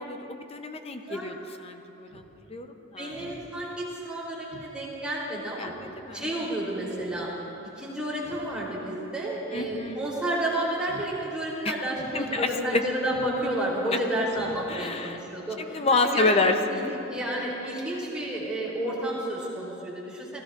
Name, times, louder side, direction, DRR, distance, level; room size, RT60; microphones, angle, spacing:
voice 1, 0.0-2.2 2.5-3.1 5.6-6.5 9.5-10.0 11.6-11.7 12.1-12.8 14.7-15.2 15.6-16.9, left 3 dB, 30° left, 6 dB, 0.8 m, -28 dB
voice 2, 1.0-1.3 2.6-5.8 6.1-7.3 7.8-16.3 16.7-20.4, right 1 dB, 5° right, -7 dB, 3.6 m, -31 dB
Speech synthesizer, 2.1-2.3 2.7-2.8 3.1-3.4 3.8-3.9 4.5-4.7 5.1-5.2 5.6-5.9 6.9-7.2 8.1-8.5 8.8-8.9 9.5-9.8 10.1-10.3 10.8-11.1 11.5-11.6 11.9-12.1 13.1-13.4 13.7-13.8 14.3-14.6 15.0-15.1, right 2 dB, 60° right, 1.1 m, -48 dB
30.0 x 16.5 x 2.6 m, 3.0 s
head